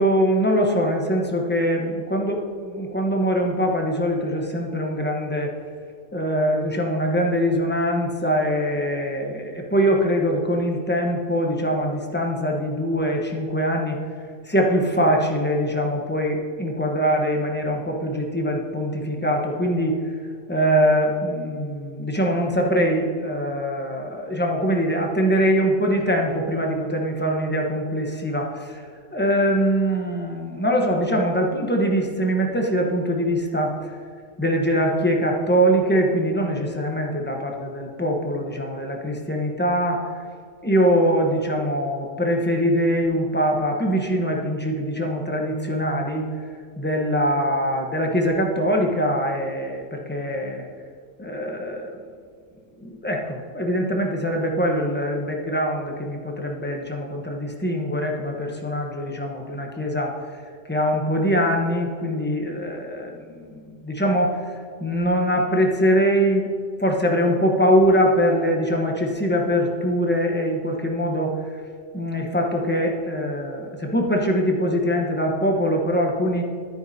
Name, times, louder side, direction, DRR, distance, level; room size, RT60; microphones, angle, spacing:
voice 1, 0.0-5.5 6.1-14.0 14.4-20.0 20.5-28.8 29.1-33.7 34.4-40.0 40.6-46.2 46.8-50.7 51.2-51.9 52.8-60.1 60.7-64.4 64.8-66.5 66.8-71.3 71.9-76.4, equal, 10° left, 0 dB, 1.0 m, -23 dB
11.0 x 9.3 x 2.8 m, 2.2 s
omnidirectional pair, 1.3 m